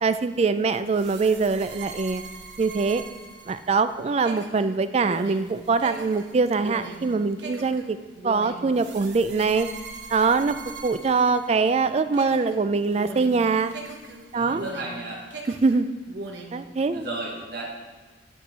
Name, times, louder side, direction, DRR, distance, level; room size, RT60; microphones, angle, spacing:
voice 1, 0.0-2.2 2.6-3.0 3.5-8.0 8.2-9.7 10.1-10.6 10.8-13.7 14.3-14.6 15.5-15.9 16.5-17.1, right 4 dB, 35° right, 11 dB, 0.3 m, -23 dB
sound 1, 0.9-11.8 12.1-15.0 15.3-16.6, right 3 dB, 70° right, 1.1 m, -40 dB
voice 2, 14.3-15.2 16.9-17.7, right 2 dB, 55° right, -3 dB, 2.1 m, -33 dB
9.3 x 4.6 x 5.4 m, 1.3 s
head